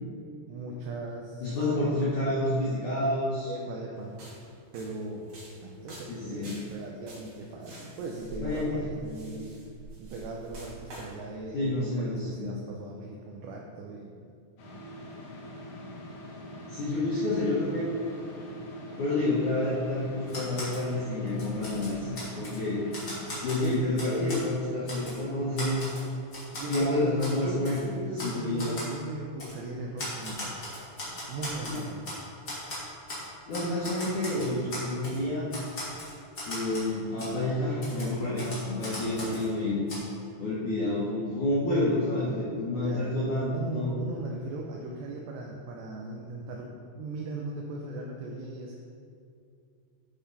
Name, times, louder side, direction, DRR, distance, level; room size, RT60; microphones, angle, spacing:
voice 1, 0.5-1.6 3.5-4.1 4.7-5.3 5.6-9.6 10.0-14.2 23.3-23.9 26.5-27.7 27.9-30.7 31.3-32.1 42.8-48.8, right 2 dB, 80° right, -1 dB, 2.5 m, -38 dB
voice 2, 1.4-3.5 6.1-6.6 8.4-8.8 11.5-12.5 16.7-17.9 19.0-22.8 23.3-25.8 26.7-27.9 28.2-28.8 31.7-31.8 33.5-35.5 36.5-39.8 40.4-44.0, left 1 dB, 80° left, -7 dB, 1.7 m, -29 dB
sound 1, 4.1-11.2, right 1 dB, 45° right, 2.5 m, -46 dB
sound 2, 14.6-23.3, left 1 dB, 60° left, 2.7 m, -43 dB
Typewriter, 20.3-20.8 21.3-22.6 22.9-24.4 24.9-25.2 25.6-26.8 27.2-27.4 27.6-27.8 28.2-28.3 28.6-28.9 29.4-29.5 30.0-32.2 32.4-33.2 33.5-35.2 35.5-36.9 37.2-37.3 37.8-39.5 39.9-40.0, left 1 dB, 30° left, 1.9 m, -38 dB
11.5 x 6.0 x 4.1 m, 2.4 s
omnidirectional pair, 5.7 m